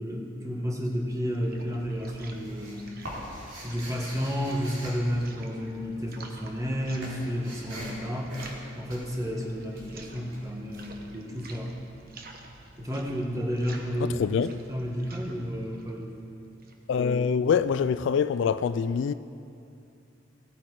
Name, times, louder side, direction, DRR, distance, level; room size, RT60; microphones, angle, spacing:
voice 1, 0.0-2.9 3.6-8.3 8.7-11.7 12.8-16.3, equal, 15° right, 1.5 m, -31 dB
sound 1, 1.0-16.9, right 3 dB, 50° right, 1.1 m, -50 dB
sound 2, 1.1-1.6 1.9-6.0 6.2-11.8, equal, 85° right, 3.6 m, -43 dB
voice 2, 16.9-19.1, left 6 dB, 65° left, 0.3 m, -24 dB
16.5 x 8.6 x 4.8 m
head